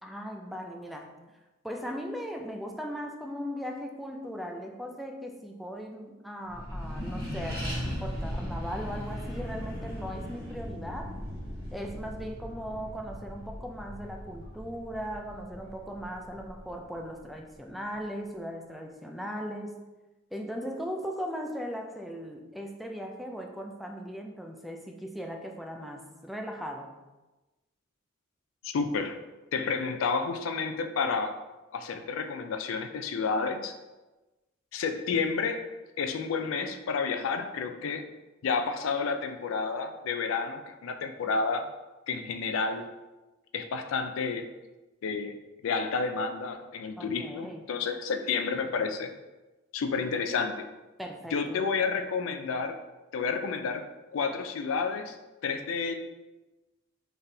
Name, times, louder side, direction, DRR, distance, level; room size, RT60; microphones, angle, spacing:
voice 1, 0.0-1.2 1.6-11.2 11.7-19.8 20.3-26.9 47.0-47.7 51.0-51.6, equal, ahead, 2 dB, 0.3 m, -38 dB
Accelerating revving vroom, 6.5-17.4, equal, 50° right, 1.5 m, -38 dB
voice 2, 28.6-29.2 29.5-31.4 31.7-33.8 34.7-35.7 36.0-38.1 38.4-41.7 42.1-42.9 43.5-44.5 45.0-45.3 45.6-49.1 49.7-50.7 51.3-52.8 53.1-55.2 55.4-55.9, left 5 dB, 70° left, 8 dB, 0.4 m, -30 dB
3.9 x 3.4 x 2.7 m, 1.1 s
head